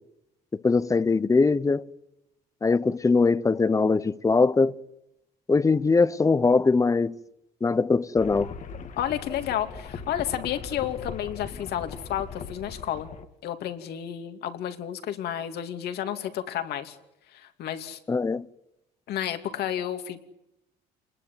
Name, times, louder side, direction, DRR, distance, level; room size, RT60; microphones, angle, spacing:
voice 1, 0.5-1.8 2.6-4.7 5.5-7.2 7.6-8.5 18.1-18.5, left 4 dB, 20° left, 0.9 m, -21 dB
sound 1, 8.2-13.2, left 5 dB, 45° left, 1.9 m, -39 dB
voice 2, 9.0-13.1 13.4-17.0 17.3-18.0 19.1-20.2, left 10 dB, 70° left, 3.0 m, -31 dB
29.0 x 20.5 x 9.6 m
cardioid pair, 110°, 17 cm